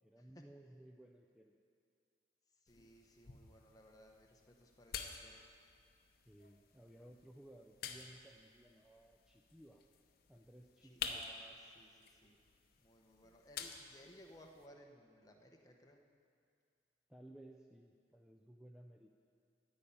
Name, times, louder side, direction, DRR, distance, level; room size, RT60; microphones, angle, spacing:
voice 1, 0.0-1.6 6.3-9.8 10.3-11.3 13.2-13.3 17.1-19.1, right 1 dB, 5° right, 1 dB, 0.4 m, -59 dB
voice 2, 2.6-5.4 10.8-12.4 12.8-16.0, equal, 20° left, 2 dB, 0.9 m, -61 dB
sound 1, 2.7-14.7, left 6 dB, 55° left, 0.8 m, -51 dB
13.0 x 5.5 x 8.7 m, 2.3 s
head